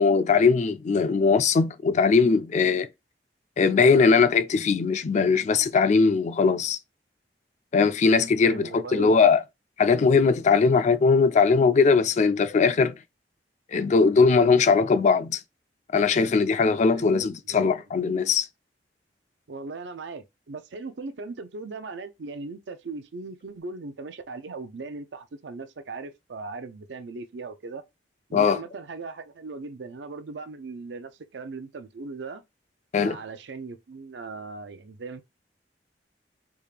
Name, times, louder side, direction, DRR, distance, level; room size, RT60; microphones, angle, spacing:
voice 1, 0.0-2.9 3.6-6.8 7.7-9.4 9.8-13.0 13.7-15.4 15.9-18.5 28.3-28.6 32.9-33.2, left 5 dB, 40° left, 0.3 m, -20 dB
voice 2, 8.4-9.4 16.9-17.7 19.5-27.8 28.3-32.4 33.0-35.2, right 3 dB, 85° right, 0.5 m, -38 dB
3.5 x 2.4 x 3.3 m
head